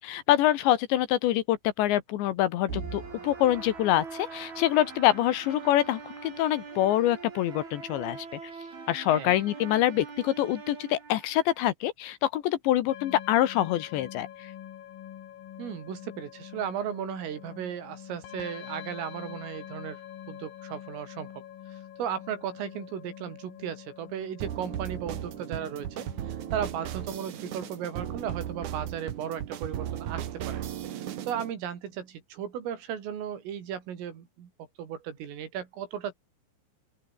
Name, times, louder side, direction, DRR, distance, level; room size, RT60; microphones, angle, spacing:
voice 1, 0.0-8.4 8.9-14.3, left 13 dB, 70° left, 3.2 m, -25 dB
sound 1, 2.7-11.7, right 4 dB, 50° right, 8.3 m, -42 dB
voice 2, 9.1-9.4 15.6-20.0 20.3-21.4 21.7-30.6 31.2-34.5 34.8-36.1, right 9 dB, 80° right, 6.1 m, -36 dB
sound 2, 12.9-28.7, left 11 dB, 90° left, 5.2 m, -46 dB
sound 3, 24.4-31.5, right 11 dB, 65° right, 1.9 m, -36 dB
open air
omnidirectional pair, 5.8 m